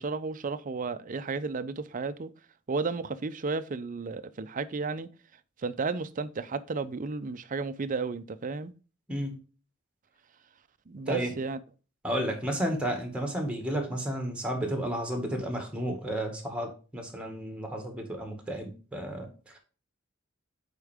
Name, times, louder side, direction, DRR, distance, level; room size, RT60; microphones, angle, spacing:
voice 1, 0.0-2.3 2.7-5.1 5.6-8.7 10.9-11.6, right 4 dB, 40° right, 0.5 m, -33 dB
voice 2, 11.1-11.4 12.0-19.6, equal, 5° right, 1.8 m, -32 dB
8.3 x 4.5 x 3.5 m
head